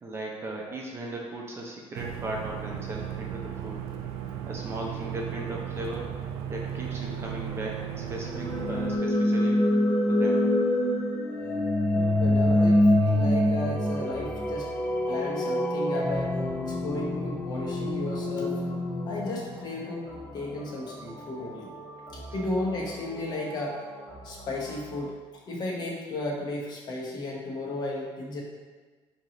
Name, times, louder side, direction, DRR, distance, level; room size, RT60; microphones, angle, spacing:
voice 1, 0.0-3.8 4.4-6.1 6.5-9.7 10.0-10.4, right 1 dB, 25° right, -1 dB, 0.6 m, -37 dB
sound 1, 1.9-9.0, right 9 dB, 80° right, 0.4 m, -35 dB
sound 2, 8.3-20.2, left 1 dB, 15° left, 0.3 m, -25 dB
voice 2, 11.9-14.7 15.1-18.6 19.0-21.7 22.1-23.8 24.2-25.1 25.5-28.4, left 2 dB, 45° left, -2 dB, 0.9 m, -34 dB
sound 3, 12.1-25.1, right 1 dB, ahead, 1.2 m, -45 dB
4.5 x 2.9 x 3.8 m, 1.4 s
cardioid pair, 160°, 10 cm